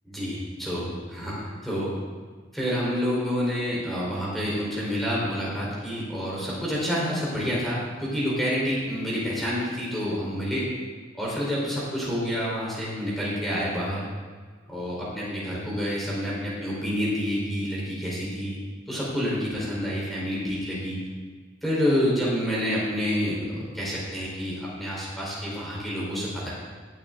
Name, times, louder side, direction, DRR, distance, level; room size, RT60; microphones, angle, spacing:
voice 1, 0.0-2.0 2.5-10.7 11.1-14.1 14.7-18.6 18.9-21.1 21.6-26.5, equal, ahead, -7 dB, 4.5 m, -28 dB
18.0 x 9.0 x 4.0 m, 1.5 s
head